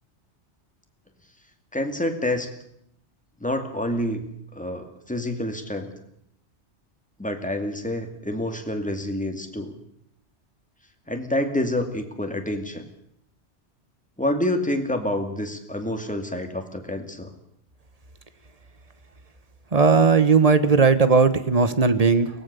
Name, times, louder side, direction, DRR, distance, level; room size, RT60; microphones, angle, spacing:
voice 1, 1.7-2.5 3.4-4.2 4.5-5.9 7.2-9.8 11.1-12.8 14.2-17.3, left 1 dB, 5° left, 5 dB, 2.4 m, -27 dB
voice 2, 19.7-22.3, right 5 dB, 35° right, 12 dB, 1.1 m, -17 dB
23.0 x 18.5 x 6.9 m, 0.74 s
omnidirectional pair, 1.2 m